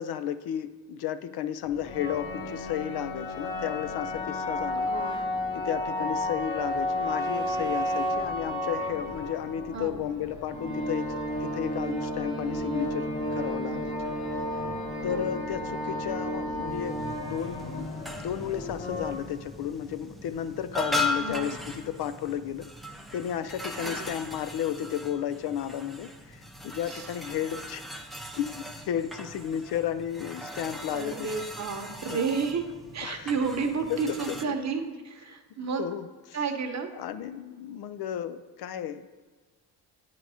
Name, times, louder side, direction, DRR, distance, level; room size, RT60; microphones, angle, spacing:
voice 1, 0.0-4.9 5.5-13.9 15.0-17.9 18.2-27.8 28.4-31.3 31.8-32.2 33.0-33.3 33.9-34.2 35.8-36.4 37.0-39.1, left 10 dB, 65° left, 12 dB, 0.5 m, -33 dB
Heavenly Horn, 1.6-19.1, left 1 dB, 85° left, 1.8 m, -32 dB
voice 2, 4.9-5.2 9.7-10.0 15.1-15.3 21.2-21.5 23.7-24.1 26.9-27.1 30.9-32.6 32.9-35.8 36.3-36.9, right 5 dB, 40° right, 5 dB, 0.9 m, -31 dB
sound 1, 16.6-34.4, left 1 dB, ahead, 0.6 m, -38 dB
8.9 x 3.9 x 4.9 m, 1.4 s
cardioid pair, 80°, 42 cm